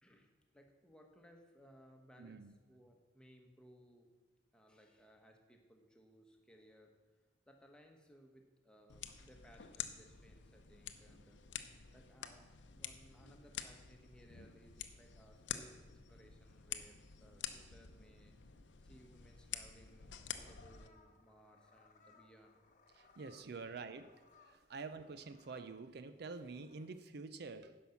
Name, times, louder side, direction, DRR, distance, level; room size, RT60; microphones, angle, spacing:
voice 1, 0.0-4.1 4.5-6.9 7.5-11.4 11.9-18.3 18.8-22.6 23.4-23.7 24.5-24.6, equal, 5° left, 2 dB, 1.2 m, -63 dB
voice 2, 2.2-2.5 22.9-24.1 24.4-27.8, right 4 dB, 65° right, 11 dB, 0.5 m, -47 dB
sound 1, 8.9-20.9, left 9 dB, 85° left, 0.7 m, -49 dB
sound 2, 20.2-26.9, left 4 dB, 45° left, 1.0 m, -68 dB
10.5 x 5.6 x 7.0 m, 1.2 s
head